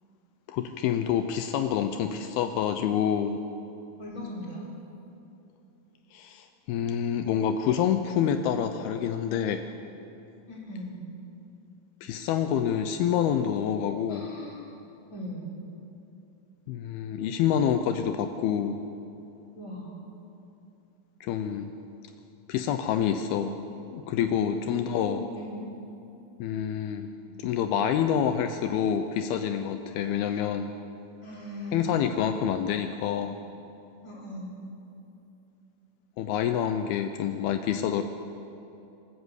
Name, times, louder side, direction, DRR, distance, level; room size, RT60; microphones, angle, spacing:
voice 1, 0.5-3.4 6.1-9.6 12.0-14.3 16.7-18.8 21.2-21.7 22.5-23.5 23.9-25.2 26.4-27.1 27.4-30.7 31.7-33.4 36.2-38.0, left 9 dB, 80° left, 7 dB, 2.7 m, -27 dB
voice 2, 4.0-4.7 10.5-11.0 14.1-14.6 15.1-15.5 19.6-20.0 24.6-25.6 31.2-32.3 34.0-34.5, left 1 dB, 20° left, -4 dB, 4.4 m, -39 dB
25.5 x 13.5 x 8.1 m, 2.8 s
omnidirectional pair, 4.4 m